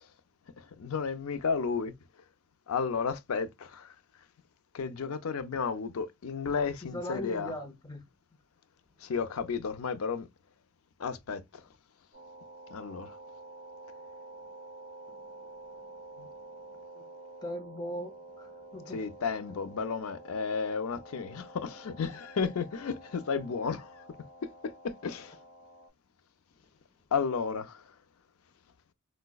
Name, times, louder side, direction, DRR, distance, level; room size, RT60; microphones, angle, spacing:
voice 1, 0.8-1.9 2.7-3.9 4.7-7.5 9.0-10.3 11.0-11.6 12.7-13.1 16.2-16.3 18.9-24.0 25.0-25.4 27.1-27.8, left 5 dB, 85° left, 0.5 m, -33 dB
voice 2, 6.8-8.0 15.1-15.5 17.0-17.1 17.4-19.0, left 1 dB, 20° left, 0.5 m, -40 dB
sound 1, 12.1-25.9, right 2 dB, 35° right, 2.0 m, -49 dB
4.6 x 2.1 x 2.3 m
head